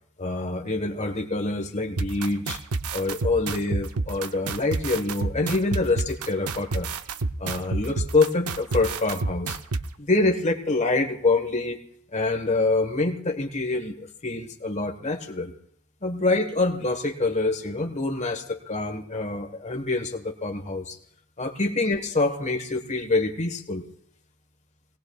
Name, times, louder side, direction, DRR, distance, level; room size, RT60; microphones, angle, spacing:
voice 1, 0.2-2.6 2.9-6.9 7.4-9.6 10.0-11.8 12.1-15.5 16.0-21.0 21.4-23.8, left 3 dB, 30° left, 4 dB, 1.3 m, -26 dB
sound 1, 2.0-9.8, right 3 dB, 85° right, 0.6 m, -28 dB
25.5 x 18.5 x 2.4 m, 0.69 s
head